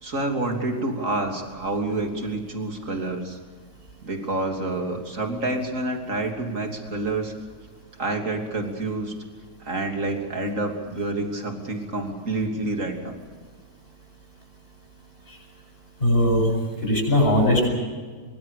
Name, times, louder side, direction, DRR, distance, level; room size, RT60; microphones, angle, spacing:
voice 1, 0.0-3.4 4.0-7.3 8.0-9.1 9.6-13.2, right 2 dB, 45° right, 3 dB, 3.4 m, -28 dB
voice 2, 16.0-16.5 16.8-17.7, left 1 dB, 35° left, -1 dB, 8.3 m, -19 dB
24.0 x 23.5 x 6.7 m, 1.5 s
omnidirectional pair, 1.8 m